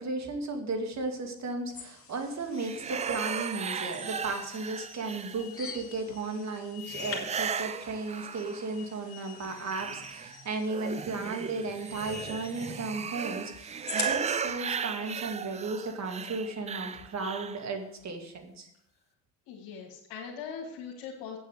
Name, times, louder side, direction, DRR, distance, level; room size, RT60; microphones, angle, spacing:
voice 1, 0.0-18.7, right 3 dB, 35° right, 4 dB, 2.3 m, -35 dB
sound 1, 1.7-14.5, left 5 dB, 30° left, 2.4 m, -45 dB
sound 2, 2.6-5.7 6.8-8.8 9.2-17.7, right 7 dB, 15° right, 0.3 m, -36 dB
voice 2, 19.5-21.4, left 6 dB, 70° left, -2 dB, 2.0 m, -41 dB
8.7 x 7.7 x 6.6 m, 0.77 s
supercardioid pair, 90°, 46 cm